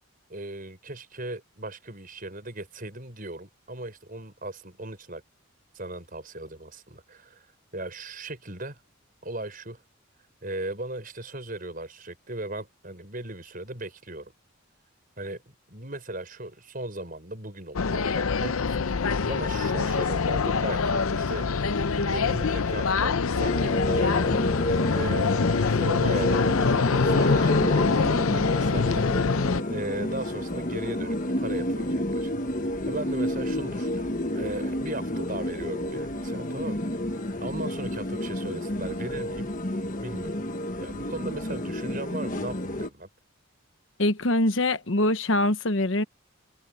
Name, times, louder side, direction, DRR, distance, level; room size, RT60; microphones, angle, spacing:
voice 1, 0.3-5.2 5.7-7.5 7.7-8.8 9.2-9.8 10.4-14.3 15.2-18.8 19.2-21.5 21.8-24.1 24.9-32.3 32.9-39.5 40.0-40.4 40.8-43.1, right 2 dB, 40° right, 6.4 m, -37 dB
sound 1, 17.8-29.6, left 5 dB, 80° left, 0.7 m, -25 dB
sound 2, 23.4-42.9, left 1 dB, 40° left, 1.5 m, -29 dB
voice 2, 44.0-46.0, left 1 dB, 65° left, 1.1 m, -23 dB
head